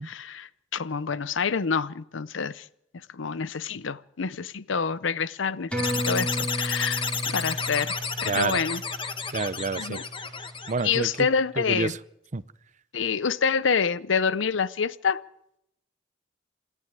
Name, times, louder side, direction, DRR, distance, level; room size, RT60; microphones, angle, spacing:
voice 1, 0.0-2.7 3.1-7.9 8.2-8.8 9.8-10.0 10.8-11.9 12.9-15.2, left 6 dB, 75° left, 0.7 m, -27 dB
sound 1, 5.7-10.7 11.0-11.1, equal, 5° left, 5.4 m, -34 dB
sound 2, 5.8-11.2, left 5 dB, 25° left, 1.3 m, -31 dB
voice 2, 8.2-8.6 9.3-10.0 10.7-11.3 11.6-12.0 12.3-12.4, right 4 dB, 40° right, 0.7 m, -28 dB
27.5 x 11.0 x 9.1 m
head